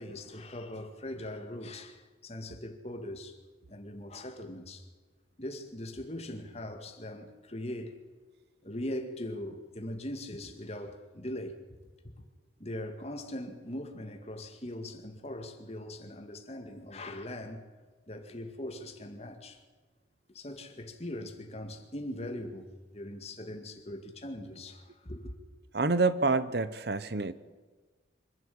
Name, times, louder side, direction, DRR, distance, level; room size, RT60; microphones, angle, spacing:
voice 1, 0.0-3.4 3.7-4.8 5.4-8.0 8.6-11.6 12.6-17.6 18.1-19.6 20.3-25.3, left 1 dB, 35° left, 2.2 m, -40 dB
voice 2, 25.7-27.3, right 3 dB, 60° right, 0.9 m, -27 dB
25.5 x 12.0 x 8.7 m
head